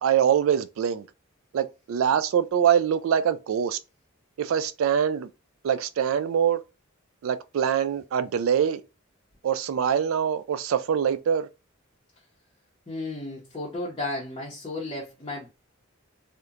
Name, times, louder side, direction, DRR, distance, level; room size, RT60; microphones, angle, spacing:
voice 1, 0.0-1.1 1.5-3.8 4.4-5.3 5.6-6.6 7.2-8.8 9.4-11.5, right 8 dB, 80° right, 0.3 m, -24 dB
voice 2, 12.9-15.5, left 2 dB, 25° left, 0.7 m, -33 dB
2.8 x 2.1 x 2.4 m
head